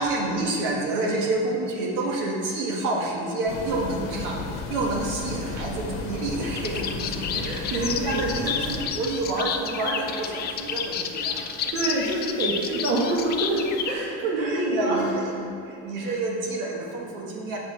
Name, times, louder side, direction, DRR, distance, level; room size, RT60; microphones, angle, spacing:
voice 1, 0.0-11.9 13.1-13.2 14.2-17.6, right 2 dB, 70° right, -2 dB, 1.7 m, -29 dB
sound 1, 3.5-8.9, left 4 dB, 80° left, 1.1 m, -34 dB
sound 2, 6.5-13.9, left 7 dB, 30° left, 0.4 m, -31 dB
voice 2, 7.4-8.4 11.7-15.0 16.0-16.2, right 2 dB, 45° right, -3 dB, 1.2 m, -26 dB
7.0 x 5.1 x 6.7 m, 2.7 s
cardioid pair, 160°, 33 cm